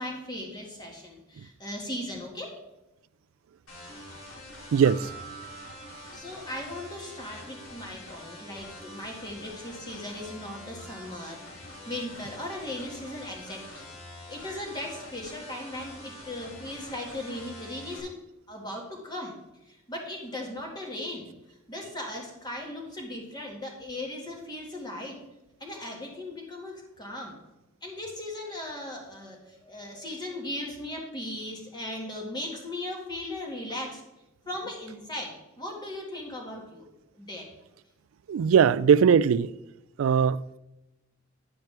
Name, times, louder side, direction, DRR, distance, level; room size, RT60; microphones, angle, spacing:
voice 1, 0.0-2.6 6.1-13.9 14.3-18.2 18.5-19.4 19.6-25.2 25.6-27.3 27.8-34.0 34.5-36.9 37.1-37.5, left 1 dB, 20° left, 1.9 m, -38 dB
sound 1, 3.7-18.0, left 1 dB, 85° left, 3.1 m, -45 dB
voice 2, 4.7-5.1 38.3-39.5 40.0-40.6, right 7 dB, 80° right, 0.3 m, -20 dB
sound 2, 4.8-7.4, right 4 dB, 5° right, 1.1 m, -48 dB
10.0 x 8.6 x 3.4 m
head